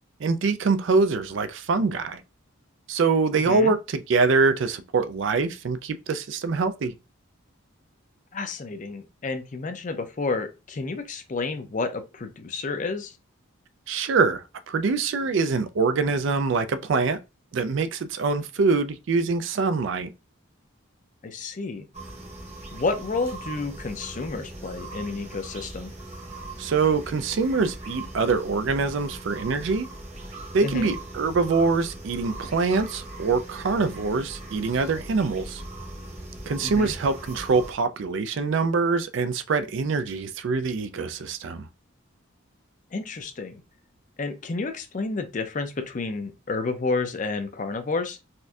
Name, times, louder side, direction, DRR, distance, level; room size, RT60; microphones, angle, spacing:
voice 1, 0.2-2.2 2.9-6.9 13.9-17.2 17.5-20.1 26.6-29.9 30.5-35.6 36.5-41.7, right 4 dB, 60° right, 0.4 m, -24 dB
voice 2, 3.3-3.7 8.3-13.2 21.2-21.9 22.7-25.9 30.6-30.9 36.6-36.9 42.9-43.6 44.2-48.2, left 3 dB, 35° left, 0.4 m, -30 dB
sound 1, 21.9-37.7, right 1 dB, 30° right, 0.8 m, -40 dB
4.2 x 2.6 x 2.3 m
head